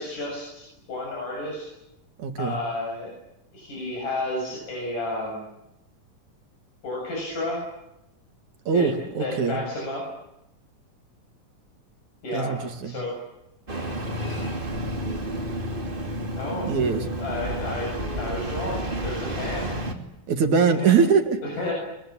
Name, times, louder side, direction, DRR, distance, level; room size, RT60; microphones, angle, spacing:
voice 1, 0.0-1.7 2.4-3.2 3.5-5.5 6.8-7.6 8.7-8.9 9.2-10.1 12.2-12.6 12.8-13.2 16.4-16.7 17.2-19.7 20.7-20.9 21.4-21.7, left 2 dB, 85° left, -1 dB, 8.9 m, -31 dB
voice 2, 2.2-2.6 8.7-9.6 12.3-13.0 16.7-17.1 20.3-21.4, right 6 dB, 70° right, 7 dB, 3.7 m, -22 dB
Engine starting, 13.7-19.9, right 1 dB, 15° right, 2.7 m, -30 dB
23.5 x 23.0 x 9.9 m, 0.86 s
omnidirectional pair, 3.6 m